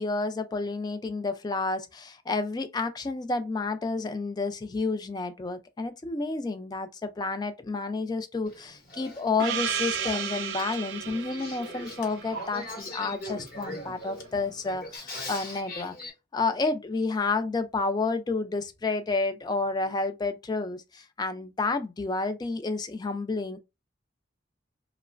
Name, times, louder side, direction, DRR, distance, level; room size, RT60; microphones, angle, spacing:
voice 1, 0.0-15.9 16.3-23.6, left 3 dB, 25° left, 0.3 m, -30 dB
Male speech man speaking / Female speech woman speaking / Conversation, 8.5-16.1, left 1 dB, 50° left, 0.9 m, -41 dB
Gong, 9.4-13.7, right 8 dB, 80° right, 0.4 m, -34 dB
3.0 x 2.0 x 2.4 m
head